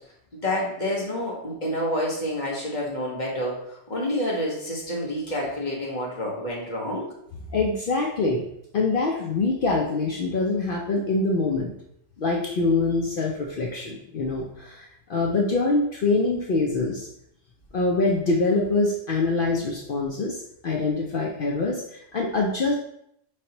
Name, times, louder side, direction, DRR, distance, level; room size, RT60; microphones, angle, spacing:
voice 1, 0.3-7.1, left 1 dB, 40° left, -3 dB, 1.3 m, -28 dB
voice 2, 7.5-8.5 8.7-11.7 12.2-17.1 17.7-22.7, left 3 dB, 60° left, -1 dB, 0.7 m, -24 dB
5.1 x 3.2 x 2.8 m, 0.74 s
omnidirectional pair, 1.2 m